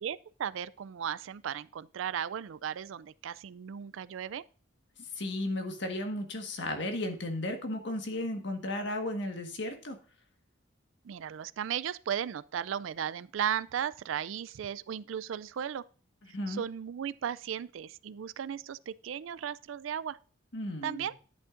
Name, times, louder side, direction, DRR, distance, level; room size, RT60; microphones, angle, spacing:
voice 1, 0.0-4.4 11.0-15.8 16.5-20.2 20.8-21.1, right 8 dB, 80° right, 0.4 m, -36 dB
voice 2, 5.2-10.0 16.3-16.6 20.5-21.1, left 1 dB, 60° left, 1.6 m, -34 dB
10.5 x 8.8 x 2.5 m
head